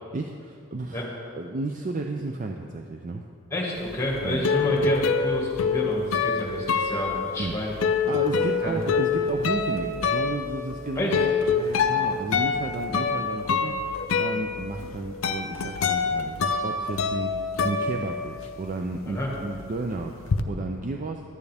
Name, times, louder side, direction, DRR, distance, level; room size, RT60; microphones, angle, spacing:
voice 1, 0.1-3.2 4.2-4.4 7.4-21.2, right 3 dB, 35° right, 3 dB, 0.4 m, -33 dB
voice 2, 3.5-7.7 8.6-8.8 10.9-11.2 19.1-19.3, left 1 dB, 15° left, -3 dB, 1.6 m, -29 dB
sound 1, 3.9-18.7 19.0-20.4, left 5 dB, 65° left, 0.5 m, -26 dB
10.5 x 9.4 x 3.4 m, 2.3 s
head